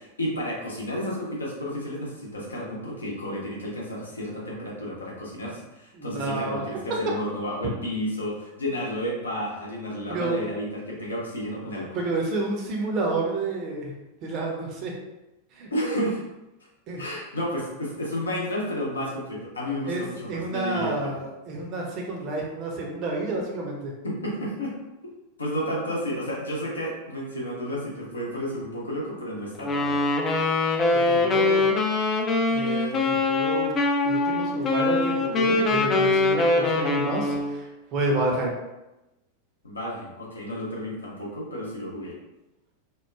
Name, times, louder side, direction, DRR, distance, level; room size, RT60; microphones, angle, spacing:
voice 1, 0.0-12.0 15.7-16.2 17.0-21.1 24.0-24.8 25.4-30.1 39.6-42.2, equal, 75° left, -4 dB, 0.7 m, -31 dB
voice 2, 5.9-6.6 10.1-10.4 11.9-13.9 14.2-14.9 15.5-15.7 16.9-17.0 19.8-20.0 20.3-23.9 30.9-31.7 32.5-33.7 34.0-38.5, right 2 dB, 40° right, -1 dB, 0.6 m, -29 dB
Wind instrument woodwind instrument, 29.6-37.6, left 3 dB, 25° left, 0.3 m, -23 dB
2.9 x 2.2 x 2.3 m, 0.98 s
figure-of-eight pair, 90°, 0 cm